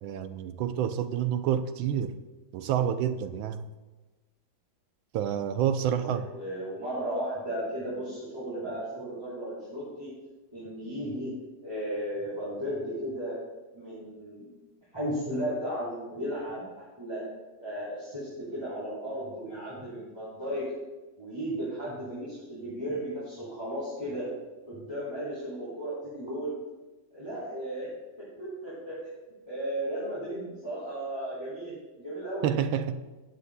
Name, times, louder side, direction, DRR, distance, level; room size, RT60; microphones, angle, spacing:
voice 1, 0.0-2.2 2.5-3.7 5.1-6.3 32.4-33.0, right 9 dB, 85° right, 1.4 m, -28 dB
voice 2, 5.9-10.1 10.5-11.3 11.6-13.4 13.7-14.5 14.9-16.6 17.0-17.3 17.6-20.7 21.2-24.3 24.6-26.5 27.1-27.9 28.2-29.0 29.5-32.5, equal, 15° right, 3.5 m, -35 dB
19.0 x 8.3 x 2.2 m
omnidirectional pair, 2.1 m